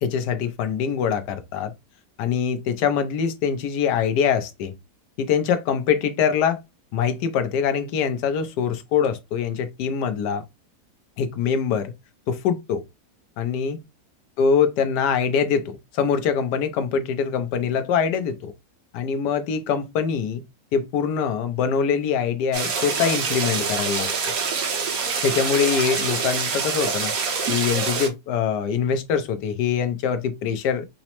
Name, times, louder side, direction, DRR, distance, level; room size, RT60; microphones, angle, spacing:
voice 1, 0.0-1.7 2.2-4.7 5.2-6.6 6.9-10.4 11.2-11.9 12.3-12.8 13.4-13.8 14.4-18.5 18.9-20.4 20.7-24.3 25.2-27.1 27.5-30.9, left 7 dB, 85° left, 1.3 m, -23 dB
sound 1, 22.5-28.1, right 5 dB, 65° right, 1.3 m, -25 dB
5.0 x 2.1 x 2.9 m
omnidirectional pair, 1.7 m